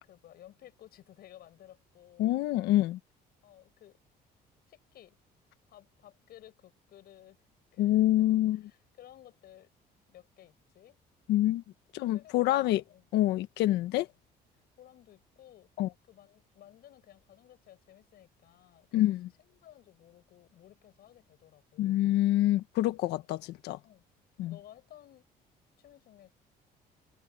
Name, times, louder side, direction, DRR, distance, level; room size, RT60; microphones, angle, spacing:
voice 1, 0.0-2.4 3.4-4.0 4.7-5.2 5.7-7.4 7.7-9.7 10.1-11.0 12.1-13.0 14.8-15.7 16.1-19.1 19.4-22.0 23.8-24.1 24.4-25.3 25.8-26.3, left 12 dB, 65° left, 7.6 m, -56 dB
voice 2, 2.2-3.0 7.8-8.6 11.3-11.6 11.9-12.8 13.1-14.1 15.8-15.9 18.9-19.3 21.8-23.8 24.4-24.6, left 14 dB, 85° left, 1.2 m, -26 dB
cardioid pair, 110°, 17 cm